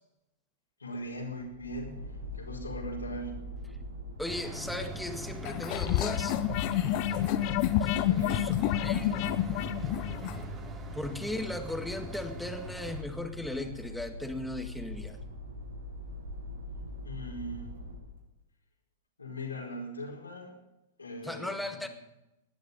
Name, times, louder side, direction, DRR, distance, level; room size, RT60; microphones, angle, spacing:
voice 1, 0.8-2.0 2.3-3.5 8.0-8.5 17.0-17.7 19.2-20.6 21.0-21.9, equal, 85° left, -2 dB, 4.7 m, -40 dB
sound 1, 1.3-18.2, left 1 dB, 80° right, 3.5 m, -43 dB
voice 2, 4.2-6.4 7.8-8.5 8.8-9.1 10.9-15.2 21.2-21.9, left 1 dB, ahead, 6 dB, 1.9 m, -37 dB
sound 2, 4.3-13.0, right 1 dB, 25° right, 2.9 m, -42 dB
sound 3, 5.4-10.4, left 13 dB, 45° left, 0.9 m, -29 dB
18.0 x 11.5 x 5.4 m, 0.91 s
figure-of-eight pair, 105°, 0 cm